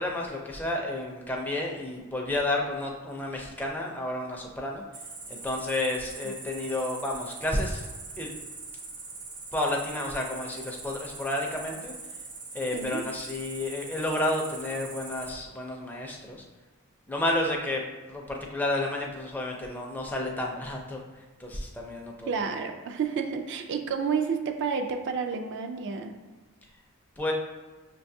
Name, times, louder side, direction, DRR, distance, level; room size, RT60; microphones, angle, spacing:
voice 1, 0.0-4.8 5.3-7.9 8.2-8.3 9.5-11.9 12.5-16.4 17.1-21.0 21.4-22.3 27.2-27.3, left 1 dB, 10° left, 0 dB, 0.4 m, -31 dB
Cricket, 4.9-15.3, right 3 dB, 70° right, 0.9 m, -42 dB
voice 2, 22.3-26.1, right 5 dB, 55° right, 5 dB, 0.3 m, -30 dB
5.9 x 2.3 x 2.6 m, 1.3 s
head